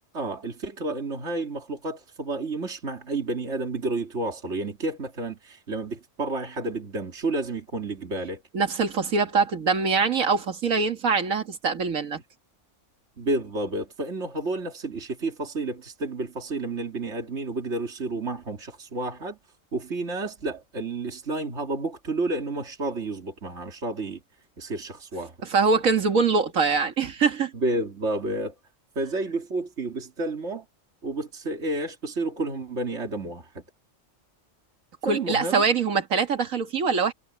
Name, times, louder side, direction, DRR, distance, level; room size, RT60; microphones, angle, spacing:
voice 1, 0.1-8.4 13.2-19.4 19.7-24.2 24.6-25.3 27.5-28.5 29.0-30.6 31.0-33.6 35.0-35.6, right 2 dB, 60° right, 2.8 m, -30 dB
voice 2, 8.5-12.2 25.5-27.5 35.1-37.1, right 5 dB, 85° right, 2.0 m, -23 dB
omnidirectional pair, 1.4 m